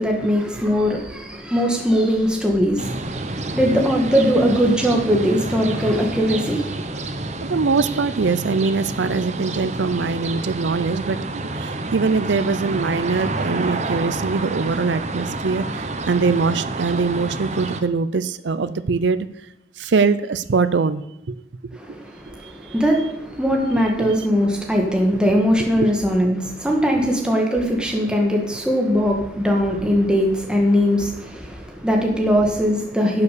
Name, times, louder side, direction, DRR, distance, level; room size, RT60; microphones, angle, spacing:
voice 1, 0.0-6.9 21.8-33.2, equal, 5° right, 0 dB, 1.7 m, -20 dB
sound 1, 2.8-17.8, right 2 dB, 35° right, 0.8 m, -29 dB
voice 2, 7.4-19.3 19.8-21.0 21.3-21.4 22.4-22.7 24.0-24.1 25.8-25.9 26.9-27.1, right 4 dB, 70° right, 13 dB, 0.5 m, -22 dB
11.5 x 7.1 x 6.8 m, 0.88 s
head